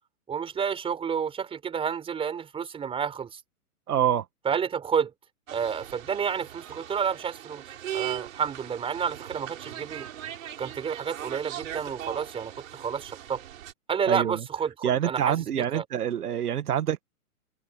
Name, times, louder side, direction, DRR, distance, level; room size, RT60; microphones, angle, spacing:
voice 1, 0.3-3.4 4.4-5.1 5.5-7.6 7.9-10.1 10.6-13.4 13.9-15.8, right 7 dB, 10° right, 4.8 m, -30 dB
voice 2, 3.9-4.2 14.1-14.4 14.8-17.0, right 10 dB, 80° right, 1.6 m, -26 dB
sound 1, 5.5-13.7, right 11 dB, 60° right, 6.9 m, -39 dB
hypercardioid pair, 150°, 45 cm